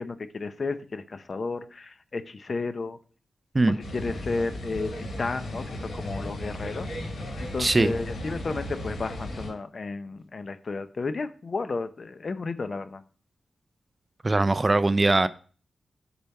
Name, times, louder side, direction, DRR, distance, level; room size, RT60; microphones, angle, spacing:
voice 1, 0.0-3.0 3.7-6.9 7.4-13.0, left 3 dB, 45° left, 0.6 m, -33 dB
sound 1, 3.8-9.5, left 1 dB, 85° left, 4.0 m, -35 dB
voice 2, 7.6-7.9 14.2-15.3, right 2 dB, 25° right, 0.3 m, -21 dB
7.0 x 4.5 x 5.4 m
wide cardioid pair, 130°, 0 cm